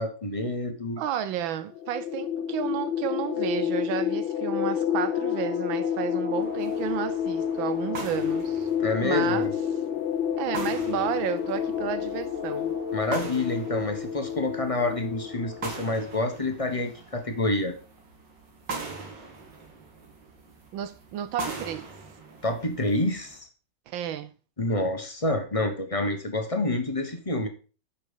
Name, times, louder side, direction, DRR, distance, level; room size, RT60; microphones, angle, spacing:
voice 1, 0.0-1.0 8.8-9.5 12.9-17.7 22.4-23.5 24.6-27.5, left 2 dB, 20° left, 1.1 m, -28 dB
voice 2, 1.0-8.7 9.0-9.8 10.4-12.7 20.7-21.9 23.9-24.3, right 10 dB, 80° right, 1.4 m, -32 dB
sound 1, 1.7-16.1, left 8 dB, 80° left, 1.9 m, -29 dB
sound 2, 6.4-23.4, right 4 dB, 65° right, 2.6 m, -42 dB
9.1 x 5.9 x 5.2 m
omnidirectional pair, 2.1 m